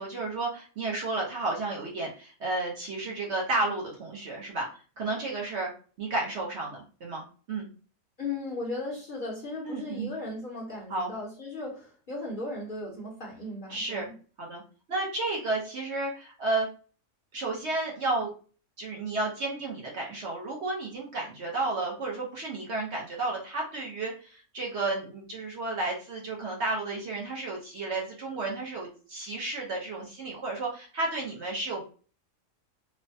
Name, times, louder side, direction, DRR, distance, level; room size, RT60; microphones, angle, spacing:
voice 1, 0.0-4.7 5.0-5.7 6.0-7.2 7.5-7.7 9.6-10.1 10.9-11.1 13.7-14.1 14.4-14.6 14.9-16.7 17.3-18.3 18.8-31.8, right 2 dB, 55° right, -2 dB, 1.0 m, -32 dB
voice 2, 8.2-14.1, left 2 dB, 45° left, -4 dB, 0.8 m, -36 dB
3.1 x 2.1 x 2.6 m, 0.37 s
omnidirectional pair, 1.5 m